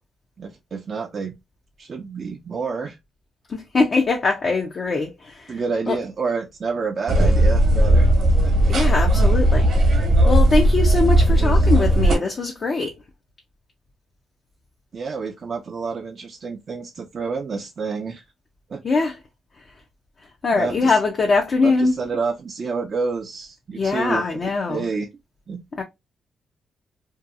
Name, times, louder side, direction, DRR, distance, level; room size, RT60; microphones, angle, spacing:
voice 1, 0.4-1.3 1.8-3.0 5.5-8.1 8.4-8.5 11.3-11.7 14.9-18.2 18.7-18.8 20.5-21.0 21.6-24.4 24.7-25.1 25.5-25.6, right 4 dB, 45° right, 0.4 m, -29 dB
voice 2, 3.5-5.6 5.9-6.0 8.7-13.0 18.8-19.2 20.4-22.0 23.8-24.8 25.8-25.9, left 3 dB, 45° left, 0.5 m, -22 dB
sound 1, 7.1-12.2, right 1 dB, 65° right, 0.9 m, -16 dB
2.7 x 2.3 x 2.5 m
cardioid pair, 90°, 0 cm